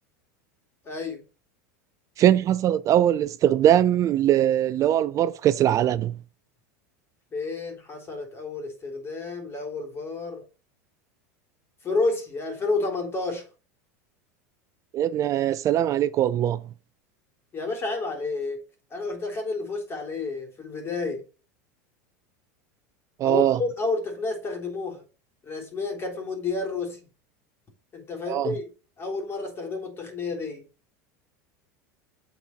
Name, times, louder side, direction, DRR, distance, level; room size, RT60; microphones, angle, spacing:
voice 1, 0.8-1.2 7.3-10.4 11.8-13.5 17.5-18.6 18.9-21.2 23.2-25.0 25.4-27.0 27.9-28.7 29.0-30.7, left 3 dB, 30° left, 3.4 m, -30 dB
voice 2, 2.2-6.1 14.9-16.6 23.2-23.6 28.3-28.5, right 11 dB, 40° right, 0.4 m, -21 dB
8.1 x 4.3 x 5.8 m
hypercardioid pair, 100°, 9 cm